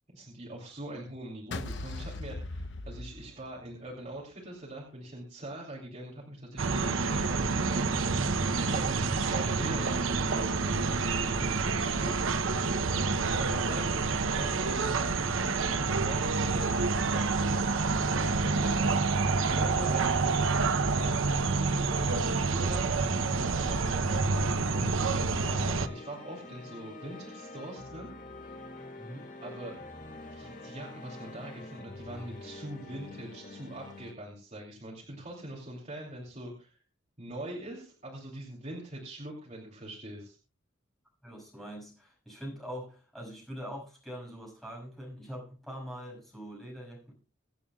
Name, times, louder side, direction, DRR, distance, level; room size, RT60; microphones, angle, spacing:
voice 1, 0.1-10.7 11.0-12.5 13.1-17.5 18.1-18.8 19.4-28.1 29.4-29.8 30.3-36.8 37.2-40.4, right 1 dB, 35° right, -3 dB, 2.9 m, -42 dB
sound 1, 1.5-3.8, left 2 dB, 65° left, 0.9 m, -39 dB
sound 2, 6.6-25.9, right 4 dB, 85° right, 0.7 m, -28 dB
sound 3, 25.4-34.1, left 2 dB, 45° left, 2.3 m, -46 dB
voice 2, 29.0-29.3 41.2-47.1, equal, ahead, -2 dB, 6.0 m, -43 dB
24.5 x 8.7 x 2.3 m, 0.35 s
head